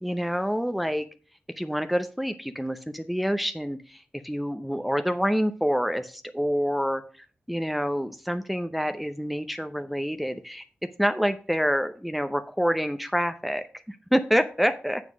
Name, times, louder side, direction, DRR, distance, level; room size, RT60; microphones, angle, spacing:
voice 1, 0.0-1.1 1.6-7.0 7.5-10.6 11.0-15.0, equal, ahead, 9 dB, 0.6 m, -27 dB
7.4 x 5.9 x 6.0 m, 0.37 s
wide cardioid pair, 90°, 4 cm